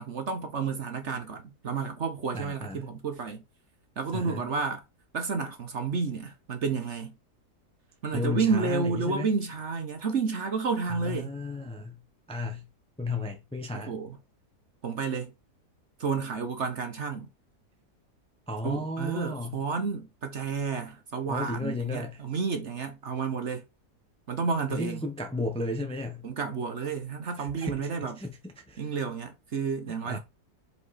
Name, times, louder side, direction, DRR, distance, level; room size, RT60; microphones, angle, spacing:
voice 1, 0.0-3.4 4.0-4.8 5.1-7.1 8.0-11.3 13.7-14.2 14.8-15.3 16.0-17.3 18.6-23.6 24.3-25.0 26.2-28.2 28.8-30.2, right 5 dB, 50° right, 1.1 m, -31 dB
voice 2, 2.3-2.9 4.1-4.5 8.1-9.3 10.9-12.0 12.3-12.6 13.0-13.9 18.5-19.6 21.3-22.2 24.7-26.3 27.4-27.9 28.2-29.0 30.0-30.2, left 2 dB, 5° left, 0.7 m, -34 dB
5.2 x 5.0 x 4.1 m
omnidirectional pair, 1.7 m